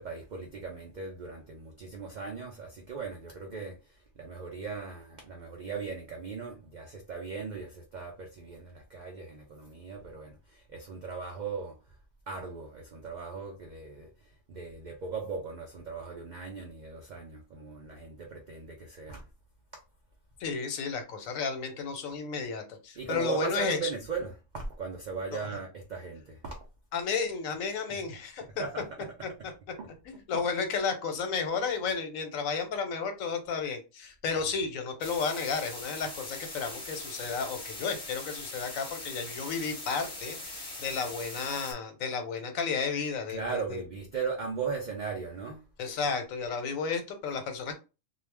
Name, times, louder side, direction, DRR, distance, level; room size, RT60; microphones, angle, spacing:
voice 1, 0.0-3.8 4.2-11.7 12.3-14.1 14.5-19.2 23.0-26.6 27.9-28.0 28.6-28.8 29.8-29.9 30.3-30.4 43.3-45.6, right 5 dB, 85° right, 0.4 m, -38 dB
voice 2, 20.4-23.9 26.9-28.6 29.2-29.3 30.1-43.8 45.8-47.7, left 5 dB, 85° left, 1.1 m, -32 dB
sound 1, 35.0-41.7, left 2 dB, 5° left, 0.8 m, -41 dB
2.3 x 2.1 x 3.3 m
omnidirectional pair, 1.4 m